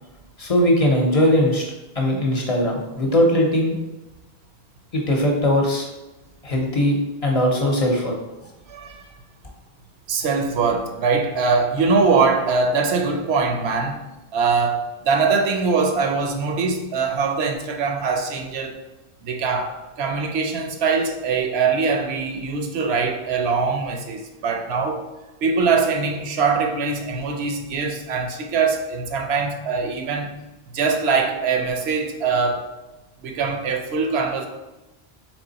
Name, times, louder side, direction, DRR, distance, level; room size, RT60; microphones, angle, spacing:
voice 1, 0.4-3.8 4.9-5.9 6.4-8.1, left 1 dB, 40° left, 0.7 m, -20 dB
voice 2, 8.7-9.0 10.1-14.0 14.3-18.8 19.2-25.0 25.4-30.3 30.7-32.7 33.2-34.5, right 4 dB, 90° right, 0.9 m, -22 dB
3.5 x 3.1 x 3.9 m
omnidirectional pair, 1.0 m